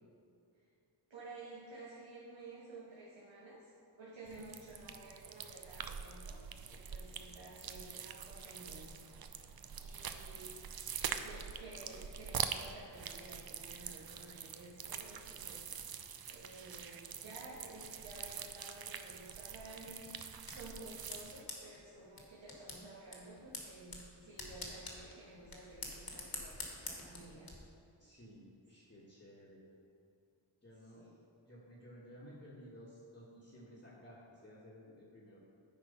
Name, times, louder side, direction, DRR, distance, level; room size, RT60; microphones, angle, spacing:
voice 1, 1.1-3.7 4.0-9.0 9.7-10.6 11.2-15.7 16.3-27.5 30.9-31.2, right 2 dB, 70° right, -8 dB, 1.7 m, -53 dB
sound 1, 4.3-21.4, right 7 dB, 50° right, 0.5 m, -45 dB
sound 2, 19.8-27.5, left 2 dB, 45° left, 1.5 m, -48 dB
voice 2, 28.0-29.6 30.6-31.0 31.4-35.4, equal, 20° left, -7 dB, 1.5 m, -55 dB
9.5 x 4.5 x 5.5 m, 2.6 s
wide cardioid pair, 90°, 47 cm